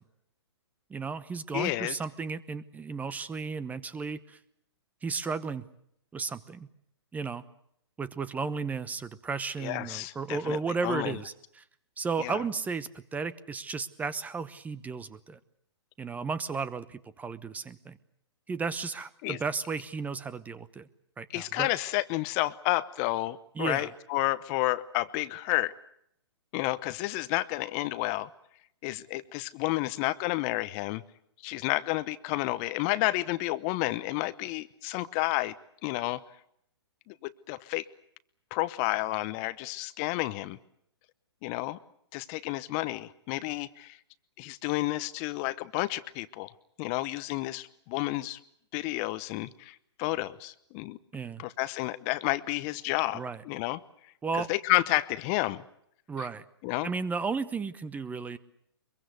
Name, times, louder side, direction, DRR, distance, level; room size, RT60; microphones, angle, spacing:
voice 1, 0.9-4.4 5.0-5.6 6.1-6.7 7.1-7.4 8.0-11.6 12.0-15.4 16.0-18.0 18.5-20.9 21.2-21.7 23.6-23.9 51.1-51.4 53.1-53.4 54.2-54.5 56.1-56.4 56.8-58.4, right 5 dB, 10° right, 16 dB, 1.0 m, -34 dB
voice 2, 1.5-2.0 9.6-11.2 12.2-12.4 19.2-19.4 21.3-25.7 26.5-28.3 28.8-31.0 31.4-35.5 35.8-36.2 37.1-37.8 38.5-40.6 41.4-41.8 42.1-44.0 44.4-46.5 46.8-48.4 48.7-51.0 51.4-53.8 54.3-55.6 56.2-56.3 56.6-56.9, left 19 dB, 35° left, 16 dB, 0.9 m, -31 dB
24.0 x 22.5 x 8.1 m, 0.73 s
hypercardioid pair, 125°, 14 cm